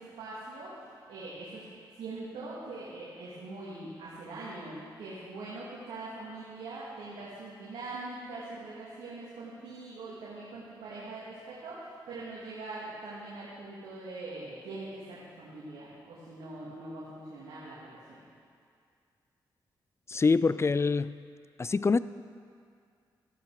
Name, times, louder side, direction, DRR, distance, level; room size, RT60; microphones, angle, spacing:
voice 1, 0.0-1.6 2.0-18.2, right 2 dB, 90° right, 2.3 m, -42 dB
voice 2, 20.1-21.2 21.6-22.0, left 4 dB, 30° left, 0.4 m, -25 dB
14.0 x 12.0 x 4.9 m
supercardioid pair, 50°, 9 cm